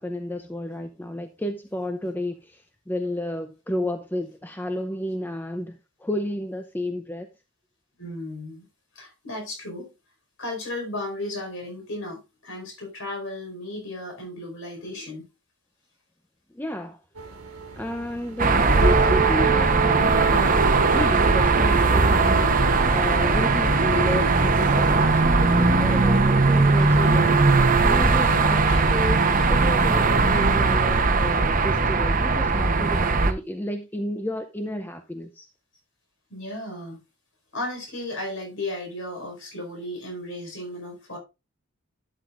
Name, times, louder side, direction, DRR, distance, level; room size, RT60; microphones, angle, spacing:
voice 1, 0.0-7.3 16.5-17.0 17.8-20.6 20.9-27.5 27.8-35.5, left 1 dB, 10° left, 0.5 m, -31 dB
voice 2, 8.0-8.6 8.9-9.9 10.4-15.3 26.8-26.9 28.1-28.8 29.3-29.5 36.3-37.0 37.5-41.2, left 1 dB, 65° left, 4.9 m, -35 dB
sound 1, 17.2-28.0, right 4 dB, 85° right, 1.7 m, -29 dB
sound 2, 18.4-33.3, right 3 dB, 35° right, 0.9 m, -19 dB
12.0 x 7.8 x 2.5 m
head